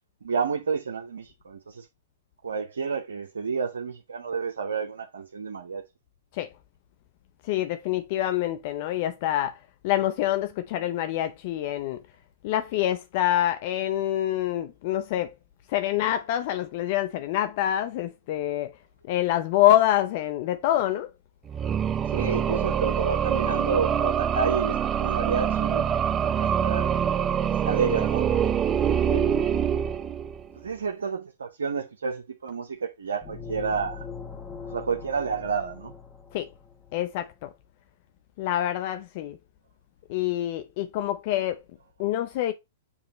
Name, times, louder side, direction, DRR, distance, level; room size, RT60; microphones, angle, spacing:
voice 1, 0.2-1.9 2.4-5.8 22.0-25.9 26.1-26.9 27.5-28.5 28.8-29.5 30.5-34.1 34.7-36.0, right 5 dB, 85° right, 0.7 m, -30 dB
voice 2, 7.4-9.6 9.8-12.0 12.4-15.3 15.7-18.7 19.1-21.1 36.3-36.5 36.9-37.5 38.4-39.4 40.1-41.6 42.0-42.5, left 13 dB, 50° left, 0.5 m, -26 dB
sound 1, 21.5-30.5, right 8 dB, 25° right, 0.5 m, -25 dB
sound 2, 33.2-36.9, left 5 dB, 15° left, 1.6 m, -41 dB
7.2 x 3.0 x 4.9 m
hypercardioid pair, 115°, 0 cm